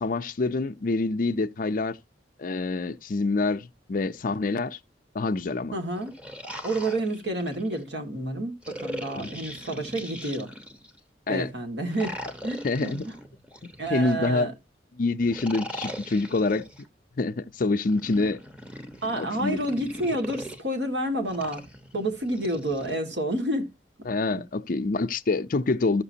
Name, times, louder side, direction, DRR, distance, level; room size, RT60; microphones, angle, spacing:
voice 1, 0.0-2.0 2.4-4.8 5.1-5.7 9.2-9.3 11.3-11.5 12.6-13.0 13.6-14.5 14.9-16.6 17.2-18.4 19.2-19.6 24.1-26.0, left 3 dB, 50° left, 0.5 m, -26 dB
voice 2, 5.7-6.1 6.6-10.5 11.3-12.1 12.4-13.1 13.8-14.5 19.0-21.6 21.9-23.7 24.3-24.4, right 1 dB, 75° right, 2.0 m, -29 dB
sound 1, 5.9-7.8 8.6-11.0 11.9-14.4 15.2-16.8 17.8-20.6 21.3-23.0, equal, 5° right, 1.0 m, -40 dB
14.5 x 6.0 x 2.7 m
head